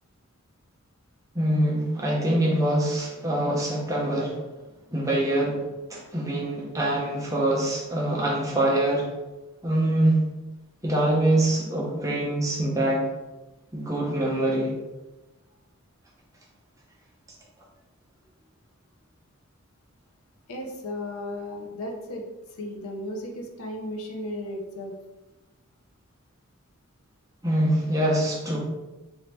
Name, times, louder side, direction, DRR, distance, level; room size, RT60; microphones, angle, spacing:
voice 1, 1.3-4.4 4.9-5.6 5.9-9.1 9.6-10.3 10.8-13.0 13.7-14.7 27.4-28.6, right 1 dB, 15° right, -3 dB, 0.6 m, -24 dB
voice 2, 20.5-25.0, left 1 dB, 80° left, 3 dB, 0.7 m, -35 dB
4.0 x 2.7 x 3.3 m, 1.1 s
head